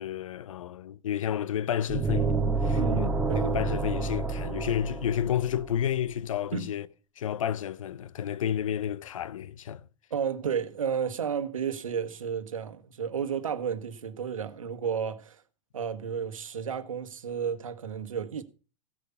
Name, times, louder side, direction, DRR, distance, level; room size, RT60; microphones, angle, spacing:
voice 1, 0.0-3.1 3.4-6.9 7.2-9.8, left 10 dB, 80° left, 0.7 m, -31 dB
sound 1, 1.9-5.7, right 4 dB, 5° right, 2.8 m, -28 dB
voice 2, 2.8-3.5 6.5-6.7 10.1-15.4 15.7-18.4, right 7 dB, 90° right, 1.4 m, -32 dB
16.5 x 6.8 x 5.5 m
hypercardioid pair, 100°, 17 cm